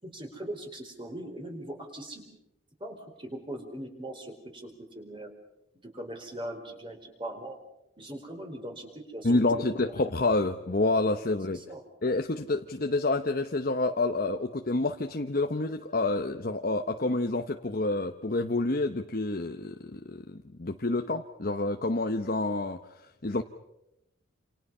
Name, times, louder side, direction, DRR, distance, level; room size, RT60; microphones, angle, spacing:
voice 1, 0.0-2.2 2.8-5.3 5.8-7.6 8.0-9.8 11.5-11.8, right 1 dB, 25° right, 4 dB, 4.5 m, -40 dB
voice 2, 9.2-11.6 12.0-22.8 23.2-23.4, left 2 dB, 45° left, 6 dB, 0.9 m, -28 dB
28.0 x 28.0 x 5.6 m, 0.88 s
head